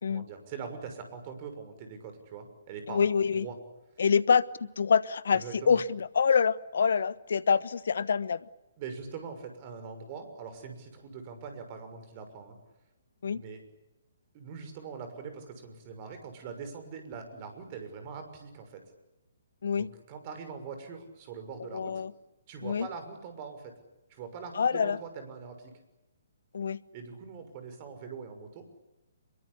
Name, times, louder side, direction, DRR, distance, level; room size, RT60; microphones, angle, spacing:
voice 1, 0.1-3.1 3.3-3.5 5.3-5.8 8.8-12.6 13.3-13.6 14.3-18.8 19.8-22.0 22.5-23.7 24.1-25.7 26.9-28.6, right 5 dB, 35° right, 6.2 m, -42 dB
voice 2, 2.9-3.5 4.0-8.5 13.2-13.4 19.6-19.9 21.7-22.1 22.6-22.9 24.5-25.0 26.5-26.8, left 6 dB, 60° left, 1.2 m, -26 dB
26.0 x 23.0 x 8.4 m
figure-of-eight pair, 130°, 0 cm